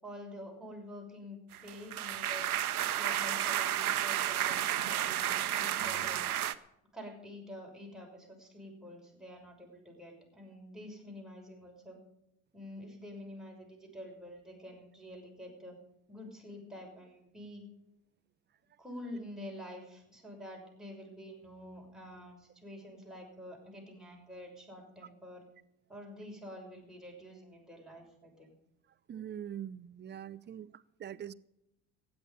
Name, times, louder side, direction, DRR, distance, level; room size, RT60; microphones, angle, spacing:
voice 1, 0.0-2.4 2.9-6.2 6.9-12.0 12.5-15.8 16.1-17.6 18.8-25.4 25.9-28.5, left 1 dB, ahead, 6.2 m, -48 dB
sound 1, 1.5-6.5, right 11 dB, 85° right, 0.7 m, -32 dB
voice 2, 29.1-31.3, right 9 dB, 25° right, 0.6 m, -43 dB
15.5 x 10.0 x 5.5 m
hypercardioid pair, 65°, 43 cm